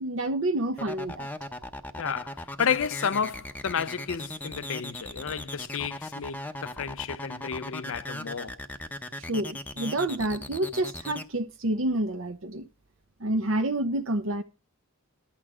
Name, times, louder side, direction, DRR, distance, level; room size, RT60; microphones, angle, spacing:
voice 1, 0.0-1.3 9.2-12.7 13.2-14.4, right 1 dB, 65° right, 0.8 m, -28 dB
sound 1, 0.8-11.2, left 1 dB, 10° left, 0.7 m, -38 dB
voice 2, 1.9-8.6, left 7 dB, 65° left, 0.5 m, -31 dB
11.0 x 9.0 x 4.9 m
head